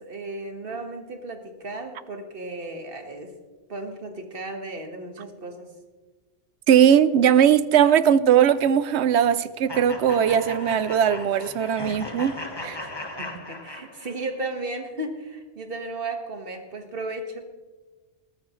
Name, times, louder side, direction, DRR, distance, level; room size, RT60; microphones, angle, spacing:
voice 1, 0.0-3.3 3.7-5.7 12.8-12.9 13.2-17.4, right 2 dB, 50° right, 5 dB, 1.8 m, -35 dB
voice 2, 6.7-12.4 12.6-12.8, right 9 dB, 70° right, 15 dB, 0.9 m, -19 dB
sound 1, 9.7-14.3, left 1 dB, 20° left, 1.4 m, -37 dB
21.0 x 14.0 x 3.2 m, 1.3 s
omnidirectional pair, 1.2 m